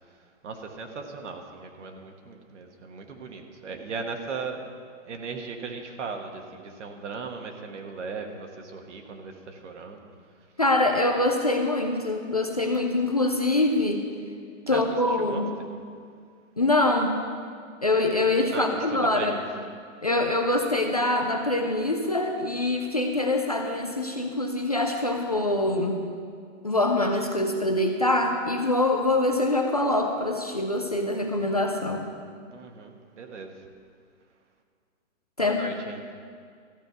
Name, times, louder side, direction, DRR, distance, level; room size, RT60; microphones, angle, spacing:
voice 1, 0.1-4.7 5.0-10.0 14.7-14.8 15.1-15.5 18.5-19.4 32.5-33.6 35.4-36.1, right 4 dB, 60° right, 4 dB, 1.3 m, -37 dB
voice 2, 10.6-14.0 14.7-15.5 16.6-17.2 17.8-19.3 20.0-26.0 26.6-32.0 35.4-35.7, left 2 dB, 30° left, 3 dB, 0.4 m, -24 dB
14.0 x 5.2 x 8.0 m, 2.1 s
hypercardioid pair, 175°, 40 cm